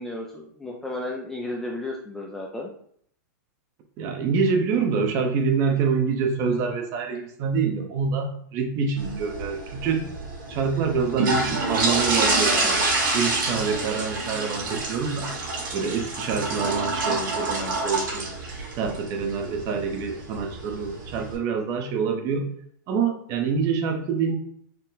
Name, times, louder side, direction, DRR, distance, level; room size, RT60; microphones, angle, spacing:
voice 1, 0.0-2.7 13.7-14.0, left 2 dB, 5° left, -1 dB, 0.3 m, -33 dB
voice 2, 4.0-10.0 10.5-12.8 13.1-15.3 15.7-18.3 18.8-22.5 22.9-24.4, right 5 dB, 30° right, 4 dB, 0.6 m, -26 dB
sound 1, 9.0-21.3, right 3 dB, 85° right, 1.6 m, -28 dB
4.3 x 2.1 x 3.9 m, 0.64 s
supercardioid pair, 155°, 10 cm